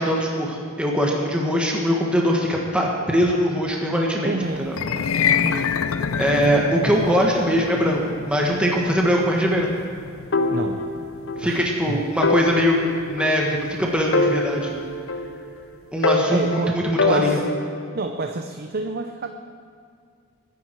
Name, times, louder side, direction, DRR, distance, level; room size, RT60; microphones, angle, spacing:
voice 1, 0.0-4.3 4.6-4.8 6.2-9.7 11.4-12.8 13.1-14.8 15.9-17.4, equal, 5° right, -1 dB, 1.6 m, -21 dB
voice 2, 4.2-4.7 5.4-5.8 10.5-10.8 11.4-11.6 11.9-12.0 16.3-16.8 17.0-17.4 17.9-19.3, right 3 dB, 50° right, 6 dB, 0.7 m, -28 dB
sound 1, 4.7-15.0, left 7 dB, 85° left, 0.6 m, -29 dB
sound 2, 10.3-11.5 11.8-11.9 12.2-13.7 14.1-15.6 16.0-17.9, left 3 dB, 65° left, 1.1 m, -24 dB
22.0 x 10.5 x 4.7 m, 2.3 s
head